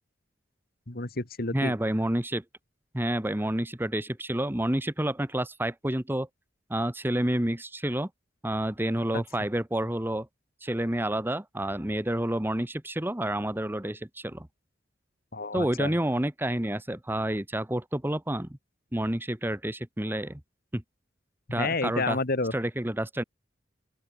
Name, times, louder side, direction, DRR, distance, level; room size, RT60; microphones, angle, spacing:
voice 1, 0.9-1.8 9.1-9.2 15.3-15.9 21.5-22.5, left 3 dB, 55° left, 2.2 m, -30 dB
voice 2, 1.5-2.4 2.9-6.3 6.7-8.1 8.4-10.3 10.6-14.5 15.5-18.5 18.9-20.4 20.7-20.8 21.5-22.2 22.5-23.2, right 1 dB, 10° right, 1.2 m, -29 dB
open air
head